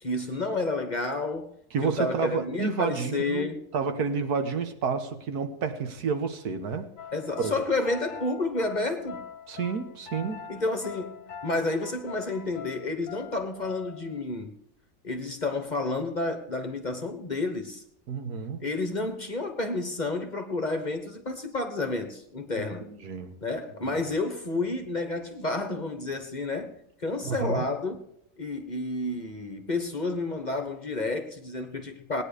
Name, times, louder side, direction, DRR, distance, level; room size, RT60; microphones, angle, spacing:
voice 1, 0.0-1.5 1.8-3.6 7.1-9.2 10.5-11.1 11.4-14.5 15.0-17.8 18.6-22.9 23.4-28.0 28.4-32.2, left 2 dB, 30° left, 1.2 m, -30 dB
voice 2, 1.7-6.9 7.4-7.6 9.5-10.5 18.1-18.6 22.6-23.4 23.8-24.0 27.2-27.7, right 5 dB, 80° right, 1.7 m, -30 dB
sound 1, 7.0-14.2, left 7 dB, 65° left, 1.2 m, -43 dB
18.5 x 9.8 x 4.9 m
omnidirectional pair, 1.6 m